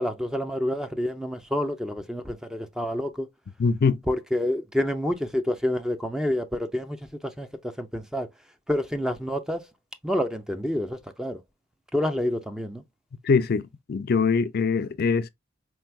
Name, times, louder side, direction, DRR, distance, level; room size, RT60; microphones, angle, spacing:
voice 1, 0.0-3.3 4.1-8.3 8.7-9.7 10.0-11.4 11.9-12.8, left 1 dB, 5° right, 0.4 m, -28 dB
voice 2, 3.6-4.0 13.2-15.3, left 5 dB, 55° left, 0.4 m, -23 dB
4.6 x 3.4 x 2.2 m
head